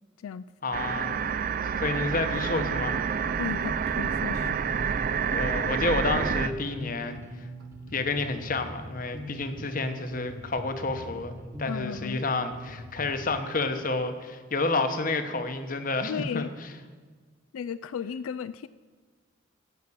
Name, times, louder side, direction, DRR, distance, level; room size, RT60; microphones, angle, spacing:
voice 1, 0.6-1.3 1.8-3.0 5.3-7.4 7.9-16.5, left 3 dB, 40° left, 8 dB, 1.0 m, -30 dB
sound 1, 0.7-6.5, right 7 dB, 40° right, 0.3 m, -28 dB
sound 2, 2.3-12.3, right 1 dB, 85° right, 1.7 m, -48 dB
voice 2, 3.4-4.5 11.6-12.2 16.1-16.5 17.5-18.7, left 7 dB, 85° left, 15 dB, 0.3 m, -34 dB
Bass guitar, 3.7-13.3, equal, 15° right, 1.1 m, -42 dB
15.0 x 6.0 x 8.5 m, 1.5 s
head